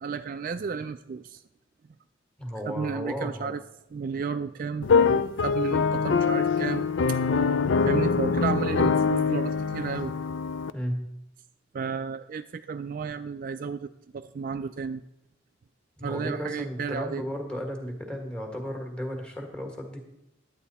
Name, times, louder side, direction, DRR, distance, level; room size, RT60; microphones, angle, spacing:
voice 1, 0.0-1.4 2.7-3.6 3.9-7.2 7.8-10.1 11.7-15.0 16.0-17.2, right 5 dB, 45° right, 10 dB, 0.3 m, -32 dB
voice 2, 2.4-3.6 10.7-11.0 16.0-20.0, equal, 5° left, 2 dB, 1.6 m, -34 dB
sound 1, 4.8-10.7, left 5 dB, 70° left, 0.4 m, -24 dB
11.0 x 9.0 x 4.2 m, 0.83 s
head